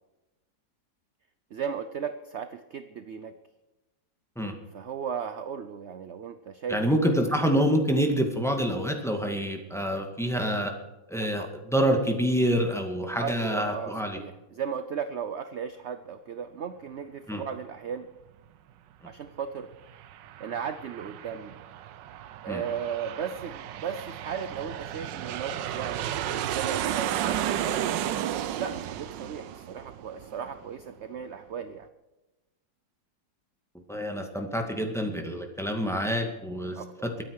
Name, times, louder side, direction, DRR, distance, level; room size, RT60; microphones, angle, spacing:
voice 1, 1.5-3.3 4.7-7.3 11.4-11.5 13.2-18.1 19.0-19.7 20.4-21.6 22.4-28.2 28.6-31.9 36.8-36.9, right 7 dB, 60° right, 10 dB, 0.7 m, -36 dB
voice 2, 6.7-10.7 11.1-14.2 17.3-17.4 22.5-22.6 33.9-37.1, equal, ahead, 3 dB, 1.9 m, -27 dB
Aircraft, 19.7-30.9, right 11 dB, 80° right, 1.4 m, -33 dB
22.5 x 9.2 x 4.8 m, 1.1 s
omnidirectional pair, 2.0 m